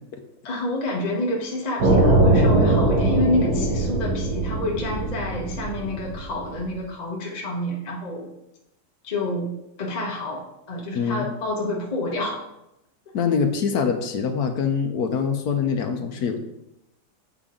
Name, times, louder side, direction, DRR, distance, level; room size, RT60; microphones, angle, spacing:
voice 1, 0.4-8.3 9.0-9.5 9.8-12.4, left 1 dB, 30° left, -3 dB, 0.9 m, -28 dB
sound 1, 1.8-6.6, right 2 dB, 65° right, 2.0 m, -21 dB
voice 2, 10.9-11.3 13.1-16.4, left 6 dB, 65° left, 5 dB, 1.1 m, -24 dB
8.5 x 5.0 x 3.7 m, 0.87 s
omnidirectional pair, 2.1 m